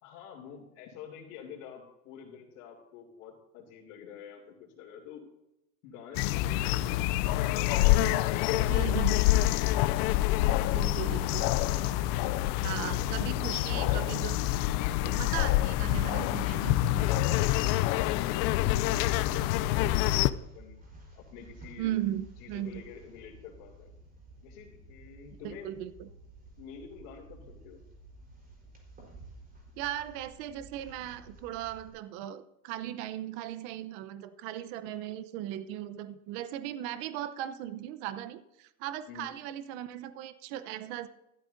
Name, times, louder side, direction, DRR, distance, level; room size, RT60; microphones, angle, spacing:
voice 1, 0.0-5.2 5.8-7.2 7.5-9.3 9.8-10.9 12.7-13.0 15.2-15.6 17.3-20.8 21.1-21.9 22.4-23.9 24.4-25.8 26.6-27.8 39.1-39.4, left 7 dB, 70° left, -5 dB, 2.9 m, -48 dB
sound 1, 6.1-20.3, left 15 dB, 50° left, 0.6 m, -27 dB
voice 2, 8.7-9.2 10.7-11.5 12.6-14.4 14.7-17.2 21.8-22.8 25.4-26.1 29.8-41.1, right 12 dB, 55° right, 12 dB, 0.9 m, -37 dB
sound 2, 18.9-31.9, right 2 dB, 20° right, 4.2 m, -52 dB
15.5 x 12.5 x 2.7 m, 0.87 s
supercardioid pair, 125°, 45 cm